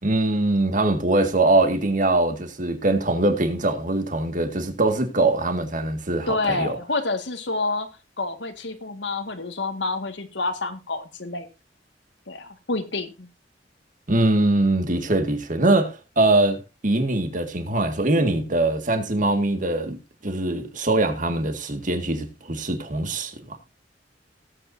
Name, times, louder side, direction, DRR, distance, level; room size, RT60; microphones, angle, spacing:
voice 1, 0.0-6.8 14.1-20.0 20.2-23.6, right 2 dB, 45° right, 1.9 m, -22 dB
voice 2, 6.3-7.9 8.2-11.5 12.3-13.3, left 3 dB, 90° left, 1.8 m, -28 dB
18.0 x 8.4 x 2.7 m
head